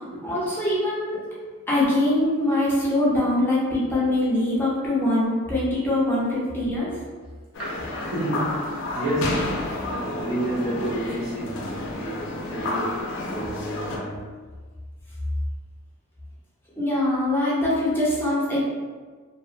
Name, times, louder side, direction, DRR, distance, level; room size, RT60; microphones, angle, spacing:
voice 1, 0.2-1.2 1.7-6.9 16.8-18.6, left 1 dB, 10° left, -7 dB, 0.6 m, -23 dB
sound 1, 7.5-14.0, left 2 dB, 60° left, 0.4 m, -30 dB
voice 2, 7.6-8.6 8.9-13.0 13.3-14.3, right 1 dB, 85° right, -8 dB, 1.0 m, -30 dB
2.7 x 2.0 x 2.4 m, 1.5 s
head